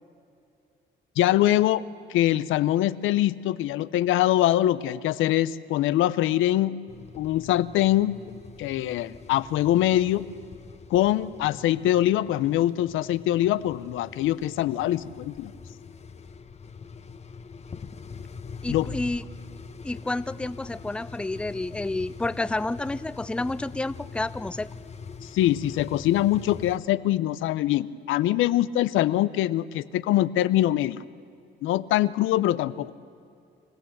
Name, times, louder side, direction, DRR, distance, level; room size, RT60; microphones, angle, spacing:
voice 1, 1.2-6.8 7.2-8.2 8.6-10.2 10.9-15.5 18.7-18.9 25.2-31.0 31.6-32.9, left 13 dB, 90° left, 15 dB, 0.6 m, -23 dB
sound 1, 6.9-26.8, left 5 dB, 35° left, 1.0 m, -43 dB
voice 2, 18.6-19.2 19.8-24.7, left 2 dB, 5° left, 16 dB, 0.5 m, -30 dB
26.0 x 15.5 x 7.8 m, 2.6 s
cardioid pair, 90°, 20 cm